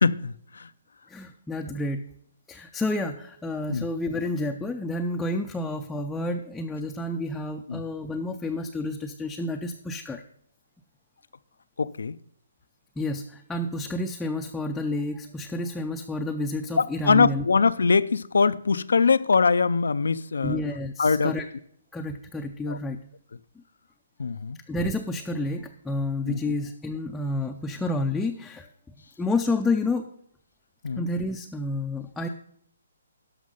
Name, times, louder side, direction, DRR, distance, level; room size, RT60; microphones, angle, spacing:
voice 1, 0.0-0.7 3.7-3.9 7.7-7.8 11.8-12.2 16.8-20.6 21.0-21.3 22.7-22.8 24.2-24.6 26.3-26.4 30.8-31.1, left 5 dB, 80° left, 0.4 m, -22 dB
voice 2, 1.1-2.0 2.5-10.2 13.0-17.5 20.4-21.5 21.9-23.0 24.7-28.7 29.2-30.1 31.0-32.3, left 2 dB, 5° left, 0.4 m, -30 dB
13.0 x 5.2 x 5.5 m
hypercardioid pair, 155°, 0 cm